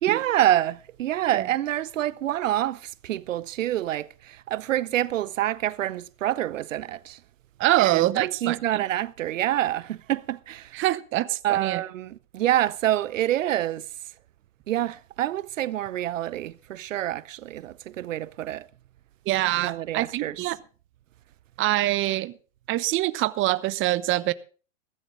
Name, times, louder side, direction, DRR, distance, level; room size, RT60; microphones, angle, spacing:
voice 1, 0.0-7.2 7.8-10.8 11.4-13.8 14.7-18.7 19.6-20.4, right 13 dB, 80° right, 0.7 m, -27 dB
voice 2, 7.6-8.8 10.7-11.8 19.3-20.6 21.6-22.3 22.7-24.3, right 16 dB, 30° right, 1.0 m, -24 dB
15.5 x 14.5 x 3.8 m
hypercardioid pair, 110°, 38 cm